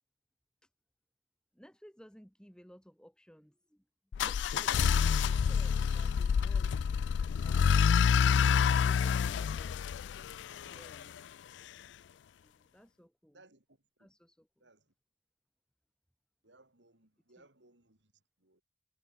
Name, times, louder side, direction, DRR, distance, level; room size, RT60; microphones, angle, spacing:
voice 1, 1.5-3.9 4.2-7.1 7.4-8.1 8.8-10.0 10.6-11.1 12.4-13.4 14.0-14.6 17.4-17.5, equal, 5° left, 2.7 m, -57 dB
sound 1, 4.1-11.0, left 7 dB, 75° left, 0.3 m, -28 dB
voice 2, 8.8-9.7 11.0-11.3 13.3-14.2 14.6-14.9 16.4-18.6, right 2 dB, 80° right, 5.0 m, -65 dB
head